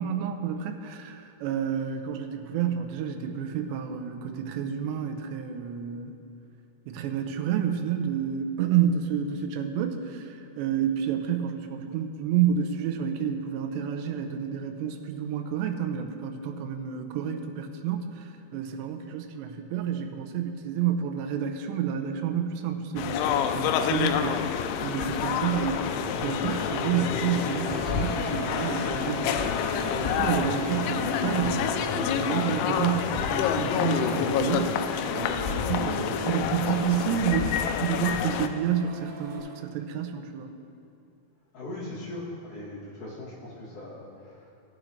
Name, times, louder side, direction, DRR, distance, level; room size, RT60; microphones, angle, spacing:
voice 1, 0.0-6.2 6.9-25.8 26.2-37.5 37.8-40.5, right 8 dB, 80° right, 5 dB, 2.8 m, -30 dB
sound 1, 23.0-38.5, left 8 dB, 90° left, 3.0 m, -28 dB
Printer, 25.2-39.4, right 3 dB, 50° right, 3.4 m, -40 dB
sound 2, 25.9-34.6, left 1 dB, 65° left, 4.8 m, -39 dB
voice 2, 41.5-44.5, left 1 dB, 50° left, -8 dB, 3.7 m, -39 dB
16.5 x 8.9 x 3.2 m, 2.8 s
omnidirectional pair, 5.3 m